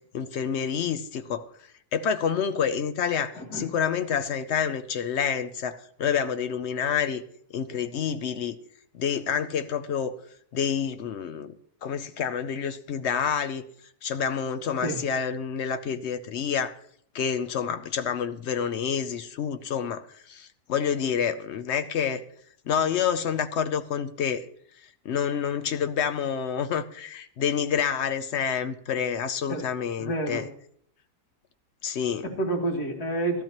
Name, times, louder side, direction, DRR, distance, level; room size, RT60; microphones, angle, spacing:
voice 1, 0.1-1.5 1.9-7.2 7.5-8.6 8.9-10.1 10.5-11.5 11.8-13.7 14.0-16.7 17.1-22.2 22.7-24.4 25.0-30.5 31.8-32.3, left 7 dB, 60° left, 10 dB, 0.7 m, -28 dB
voice 2, 3.3-3.7 14.8-15.0 29.5-29.7 30.0-30.4 32.2-33.4, right 2 dB, 80° left, 0 dB, 2.5 m, -29 dB
15.5 x 12.0 x 3.0 m, 0.66 s
omnidirectional pair, 1.7 m